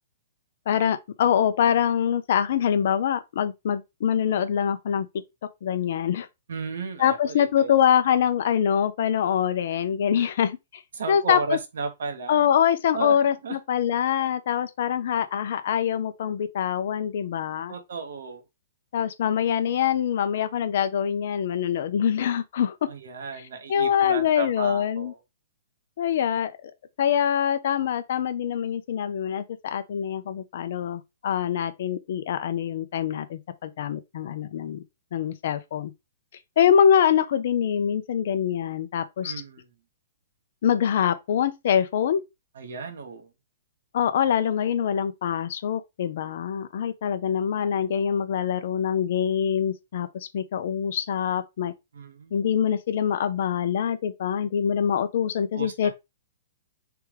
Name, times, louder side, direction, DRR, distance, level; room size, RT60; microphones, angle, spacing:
voice 1, 0.7-5.1 5.6-6.3 7.0-10.8 11.1-11.6 12.3-17.7 18.9-22.9 23.4-25.1 26.0-26.7 27.0-34.8 35.1-35.9 36.6-39.4 40.6-42.2 43.9-51.7 52.3-55.9, left 8 dB, 55° left, 0.5 m, -24 dB
voice 2, 6.5-7.7 11.0-12.4 12.9-13.1 13.4-13.6 17.7-18.4 22.9-25.1 39.2-39.6 42.6-43.3 51.9-52.4 55.5-55.9, right 4 dB, 65° right, 0.9 m, -34 dB
3.4 x 3.3 x 3.2 m
figure-of-eight pair, 115°, 0 cm